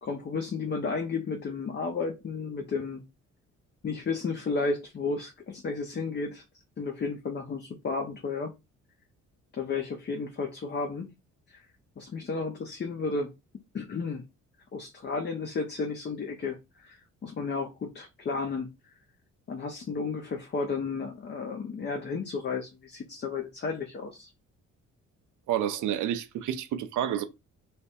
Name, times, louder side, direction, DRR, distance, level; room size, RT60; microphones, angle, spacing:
voice 1, 0.0-3.1 3.8-6.4 6.8-8.5 9.5-11.1 11.5-11.6 12.0-13.3 13.7-14.2 14.7-18.7 19.5-24.3, left 4 dB, 35° left, 0.7 m, -33 dB
voice 2, 25.5-27.2, right 10 dB, 80° right, 0.6 m, -29 dB
3.3 x 2.1 x 4.2 m
cardioid pair, 90°, 30 cm